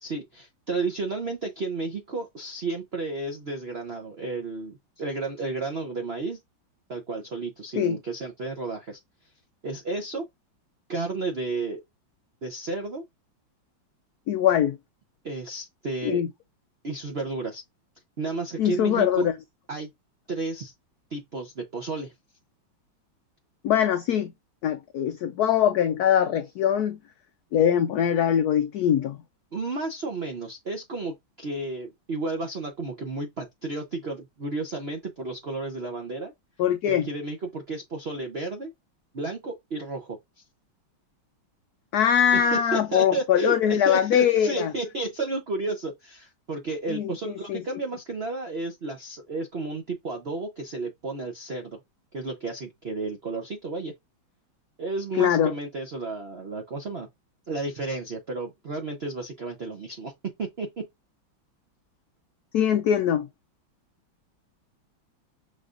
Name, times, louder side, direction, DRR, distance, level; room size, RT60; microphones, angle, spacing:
voice 1, 0.0-6.4 6.9-9.0 9.6-10.3 10.9-11.8 12.4-13.0 15.2-16.2 16.8-17.6 18.2-19.3 19.7-19.9 20.3-20.7 21.1-22.1 29.5-36.3 36.9-38.7 39.1-40.2 42.3-51.8 52.1-53.9 54.8-57.1 57.5-60.1 60.4-60.9, right 3 dB, 65° right, 0.6 m, -32 dB
voice 2, 14.3-14.8 16.0-16.3 18.6-19.3 23.6-24.3 24.6-27.0 27.5-29.2 36.6-37.1 41.9-44.7 46.9-47.6 55.2-55.5 62.5-63.3, left 9 dB, 85° left, 0.8 m, -22 dB
6.2 x 3.2 x 2.5 m
omnidirectional pair, 2.2 m